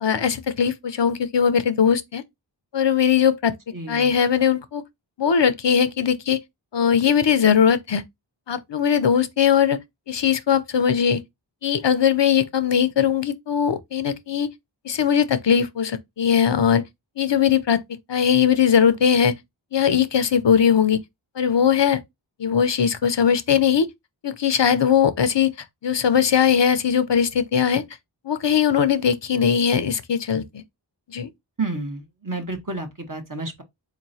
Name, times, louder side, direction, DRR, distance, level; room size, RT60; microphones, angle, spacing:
voice 1, 0.0-2.2 2.7-3.5 3.9-4.8 5.2-6.4 6.7-8.0 8.5-9.8 10.1-11.2 11.6-14.5 14.8-16.8 17.2-17.8 18.1-19.3 19.7-21.0 21.4-22.0 22.4-23.9 24.2-25.5 25.8-27.8 28.2-30.6 31.1-31.3, left 7 dB, 65° left, 0.6 m, -20 dB
voice 2, 3.7-4.1 31.6-33.6, right 3 dB, 45° right, 1.1 m, -30 dB
4.0 x 3.0 x 2.7 m
wide cardioid pair, 45°, 46 cm